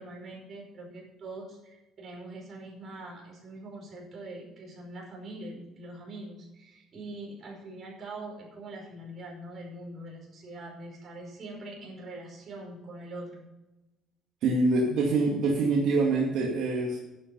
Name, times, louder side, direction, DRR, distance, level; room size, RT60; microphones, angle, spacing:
voice 1, 0.0-13.5, right 2 dB, 35° right, -1 dB, 5.1 m, -43 dB
voice 2, 14.4-17.0, right 3 dB, 65° right, -2 dB, 2.3 m, -25 dB
11.0 x 8.8 x 5.5 m, 1.0 s
cardioid pair, 150°, 0 cm